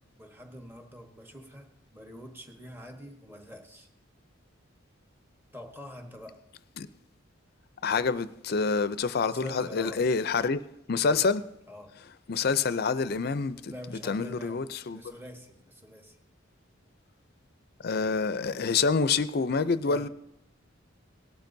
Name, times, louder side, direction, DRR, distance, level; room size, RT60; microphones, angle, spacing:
voice 1, 0.2-3.9 5.5-6.4 9.2-10.0 11.7-11.9 13.6-14.6 14.9-16.2 19.8-20.1, equal, 10° right, 1.2 m, -45 dB
voice 2, 7.8-10.6 10.9-11.4 12.3-13.7 14.0-15.0 17.8-20.1, left 4 dB, 55° left, 0.5 m, -27 dB
18.0 x 11.5 x 2.7 m
head